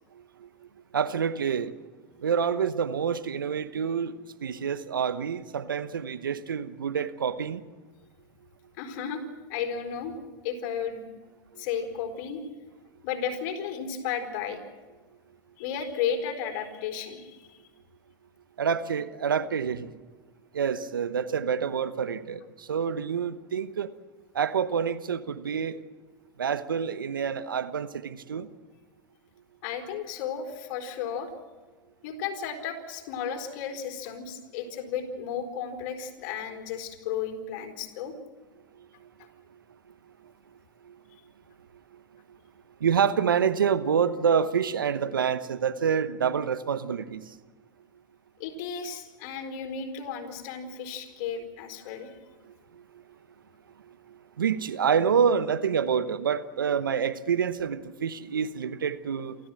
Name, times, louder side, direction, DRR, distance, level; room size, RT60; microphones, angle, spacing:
voice 1, 0.1-0.5 0.9-1.7 2.2-7.6 11.5-11.6 18.6-19.9 20.5-23.9 24.3-25.8 26.4-28.5 38.8-39.1 40.8-41.0 42.3-42.4 42.8-47.4 52.7-52.8 53.9-59.4, right 7 dB, 85° right, 13 dB, 1.1 m, -27 dB
voice 2, 8.8-9.2 9.5-10.2 10.4-11.1 11.6-12.5 13.0-14.6 15.6-17.6 29.6-31.3 32.0-38.1 48.4-52.3, left 7 dB, 60° left, 4 dB, 4.4 m, -34 dB
28.0 x 14.0 x 7.7 m, 1.3 s
hypercardioid pair, 85°, 11 cm